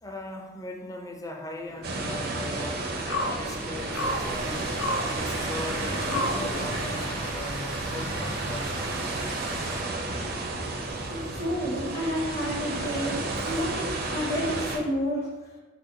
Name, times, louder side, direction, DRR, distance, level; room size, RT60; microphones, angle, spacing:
voice 1, 0.0-2.9 3.2-4.8 5.0-9.0, left 2 dB, 20° left, 2 dB, 0.4 m, -39 dB
sound 1, 1.7-7.0, left 1 dB, 85° left, 0.5 m, -34 dB
sound 2, 1.8-14.8, right 2 dB, 55° right, 0.5 m, -32 dB
sound 3, 3.9-9.8, right 1 dB, 90° right, 0.8 m, -39 dB
voice 2, 11.1-15.3, equal, 50° left, -6 dB, 0.8 m, -30 dB
4.1 x 2.1 x 3.7 m, 1.2 s
head